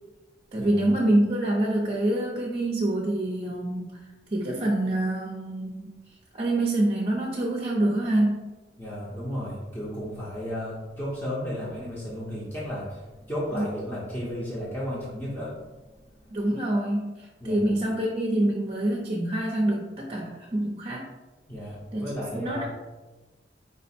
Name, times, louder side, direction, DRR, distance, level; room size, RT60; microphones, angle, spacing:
voice 1, 0.5-4.0 4.3-5.9 6.3-8.4 13.5-13.6 16.3-21.0 21.9-22.7, right 1 dB, 35° right, -2 dB, 0.6 m, -26 dB
voice 2, 8.8-15.6 17.4-17.6 21.5-22.7, equal, 15° left, -9 dB, 0.7 m, -33 dB
4.8 x 2.1 x 4.2 m, 1.2 s
head